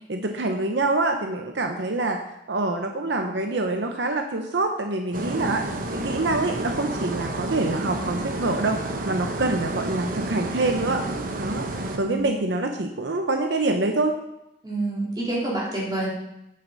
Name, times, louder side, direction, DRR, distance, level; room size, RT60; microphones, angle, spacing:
voice 1, 0.1-2.2 2.5-5.6 5.9-11.0 11.4-14.1, right 2 dB, 80° right, 4 dB, 0.8 m, -26 dB
sound 1, 5.1-12.0, right 2 dB, 50° right, 1.0 m, -30 dB
voice 2, 14.6-16.1, right 2 dB, 25° right, -6 dB, 3.5 m, -27 dB
9.0 x 7.6 x 4.0 m, 0.85 s
head